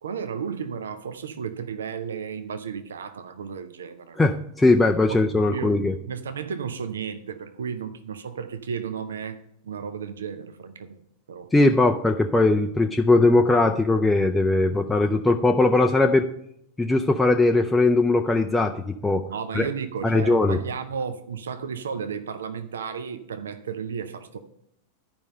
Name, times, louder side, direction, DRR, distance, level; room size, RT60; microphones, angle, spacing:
voice 1, 0.0-4.2 5.1-5.2 5.5-11.0 11.3-11.5 19.3-24.4, right 6 dB, 65° right, 0.6 m, -33 dB
voice 2, 4.2-5.9 11.5-16.2 16.8-19.3 19.5-19.7 20.0-20.6, left 2 dB, 10° left, 0.4 m, -20 dB
11.0 x 5.3 x 5.4 m
figure-of-eight pair, 90°, 0 cm